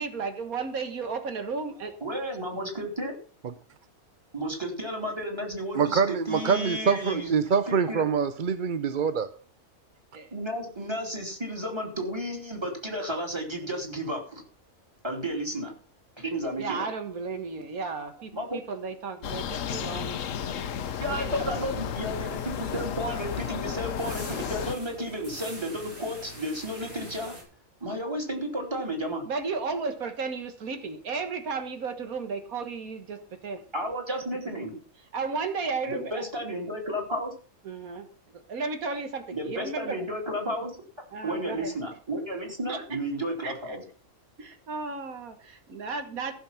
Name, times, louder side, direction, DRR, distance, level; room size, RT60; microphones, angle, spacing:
voice 1, 0.0-2.0 10.1-10.3 16.6-20.8 21.1-21.3 21.6-21.7 29.2-33.6 35.1-36.2 37.6-38.1 38.5-40.0 41.1-41.7 42.7-42.8 43.4-43.8 44.4-46.3, right 4 dB, 90° right, 1.9 m, -34 dB
voice 2, 2.0-3.1 4.3-7.4 7.7-8.1 10.3-14.4 15.0-15.7 16.2-16.9 18.3-18.6 21.0-27.3 27.8-29.2 33.7-34.7 35.9-37.3 39.3-40.7 41.2-43.8, equal, 20° right, 3.0 m, -32 dB
voice 3, 5.7-9.3, right 6 dB, 45° right, 0.7 m, -25 dB
sound 1, 19.2-24.8, left 8 dB, 70° left, 1.1 m, -33 dB
sound 2, 22.1-27.4, right 1 dB, 65° right, 5.5 m, -45 dB
15.0 x 6.8 x 5.8 m
omnidirectional pair, 1.4 m